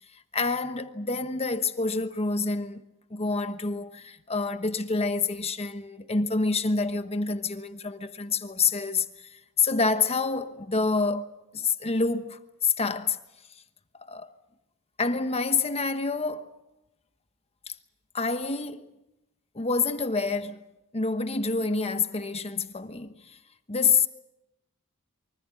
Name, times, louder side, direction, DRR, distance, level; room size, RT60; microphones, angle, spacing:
voice 1, 0.1-2.8 3.1-13.2 14.0-14.3 15.0-16.5 17.7-17.8 18.1-18.9 19.5-20.6 20.9-23.4 23.7-24.1, left 4 dB, 30° left, 1.2 m, -27 dB
25.5 x 24.0 x 6.4 m
head